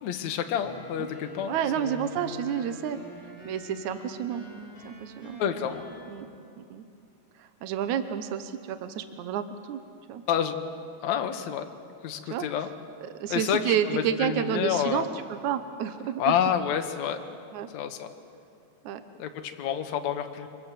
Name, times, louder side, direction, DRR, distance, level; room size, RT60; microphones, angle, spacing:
voice 1, 0.0-2.0 5.4-5.8 10.3-10.6 11.0-11.6 12.0-12.7 13.3-15.1 16.2-17.2 17.7-18.1 19.2-20.5, left 9 dB, 60° left, 6 dB, 2.0 m, -29 dB
sound 1, 0.6-6.1, equal, 15° left, 7.2 m, -45 dB
voice 2, 1.5-3.0 3.5-4.4 4.9-5.4 6.1-6.3 6.6-6.8 7.4-9.8 10.1-10.2 12.3-12.5 13.2-16.3 17.5-17.7 18.8-19.0, right 9 dB, 85° right, 9 dB, 1.6 m, -30 dB
27.0 x 25.0 x 7.5 m, 2.5 s
omnidirectional pair, 4.8 m